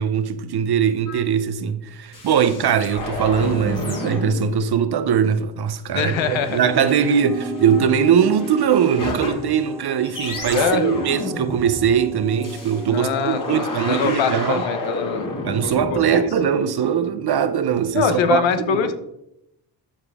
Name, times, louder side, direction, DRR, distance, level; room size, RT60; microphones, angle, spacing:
voice 1, 0.0-14.6 15.4-18.9, right 8 dB, 50° right, 0.9 m, -21 dB
sound 1, 1.1-1.2 2.1-4.6 6.4-9.7 10.0-16.6, left 2 dB, 40° left, 2.8 m, -31 dB
voice 2, 5.9-6.6 10.5-11.1 12.9-15.3 15.6-16.2 17.9-18.9, left 6 dB, 65° left, 1.1 m, -23 dB
sound 2, 6.1-14.7, right 2 dB, 5° right, 0.5 m, -36 dB
13.0 x 5.0 x 3.7 m
hypercardioid pair, 45°, 49 cm